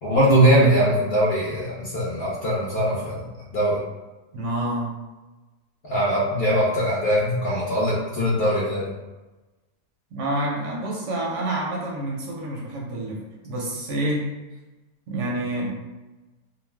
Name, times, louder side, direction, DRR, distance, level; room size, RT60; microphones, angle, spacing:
voice 1, 0.0-3.8 5.8-8.9, right 1 dB, 55° left, -6 dB, 0.7 m, -21 dB
voice 2, 4.3-4.9 10.1-13.2 13.4-14.3 15.1-15.7, right 1 dB, 70° right, -2 dB, 0.8 m, -28 dB
2.4 x 2.1 x 3.3 m, 1.1 s
omnidirectional pair, 1.5 m